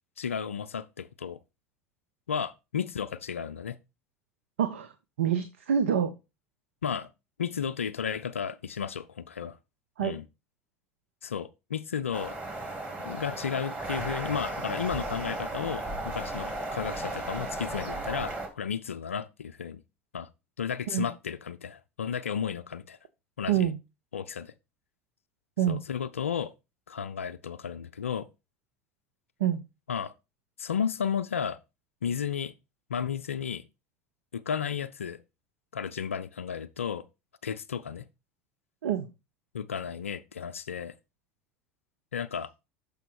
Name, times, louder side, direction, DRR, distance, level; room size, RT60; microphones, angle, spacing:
voice 1, 0.2-1.4 2.3-3.8 6.8-7.1 7.4-9.6 10.0-10.2 11.2-12.4 13.0-19.8 20.1-20.3 20.6-23.0 23.4-23.7 24.1-24.5 25.7-26.5 26.9-28.3 29.9-30.1 30.6-31.6 32.0-32.5 32.9-33.6 34.3-35.2 35.7-37.1 37.4-38.0 39.5-40.9 42.1-42.5, left 7 dB, 85° left, 0.4 m, -33 dB
voice 2, 4.6-4.9 5.2-6.1 10.0-10.2 20.9-21.1 23.5-23.8 25.6-25.8 29.4-29.6 38.8-39.1, right 9 dB, 75° right, 0.6 m, -26 dB
sound 1, 12.1-18.5, right 2 dB, 20° right, 2.7 m, -35 dB
6.9 x 5.0 x 4.5 m
hypercardioid pair, 75°, 7 cm